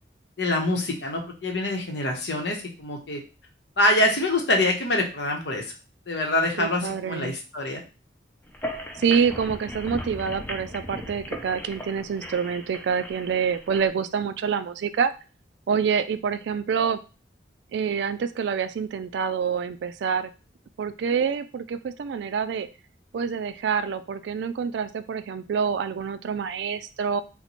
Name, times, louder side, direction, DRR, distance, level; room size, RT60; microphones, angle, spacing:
voice 1, 0.4-3.2 3.8-5.7 6.1-7.8, left 1 dB, 75° left, 2 dB, 0.8 m, -25 dB
voice 2, 6.6-7.3 9.0-15.1 15.7-17.0 17.7-20.3 20.8-22.7 23.1-27.2, right 6 dB, 75° right, 12 dB, 0.3 m, -27 dB
sound 1, 8.5-13.9, equal, 10° left, 0.4 m, -37 dB
4.1 x 2.1 x 2.9 m, 0.32 s
head